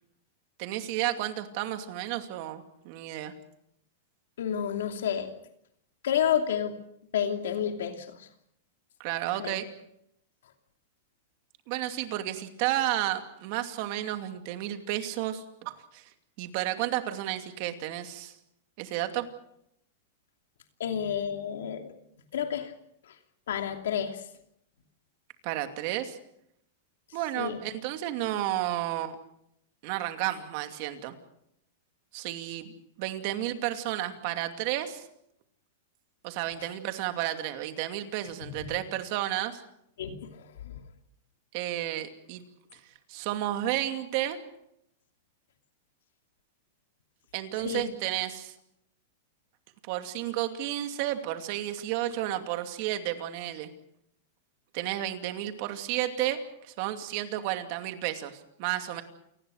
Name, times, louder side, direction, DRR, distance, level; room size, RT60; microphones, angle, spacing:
voice 1, 0.6-3.3 9.0-9.7 11.7-16.1 16.4-18.3 18.8-19.3 25.4-26.2 27.1-29.2 29.8-31.2 32.1-32.7 33.0-35.1 36.2-39.6 41.5-42.4 42.7-42.8 43.1-44.4 47.3-48.5 49.9-53.7 54.7-59.0, right 13 dB, 40° right, 7 dB, 2.5 m, -32 dB
voice 2, 4.4-5.3 6.0-6.8 7.1-8.3 9.4-9.6 20.8-21.9 22.3-22.7 23.5-24.2 27.4-27.6 38.5-38.6 40.0-40.8 47.6-47.8, left 9 dB, 85° left, 5 dB, 2.8 m, -30 dB
28.5 x 19.0 x 6.5 m, 0.76 s
supercardioid pair, 165°, 0 cm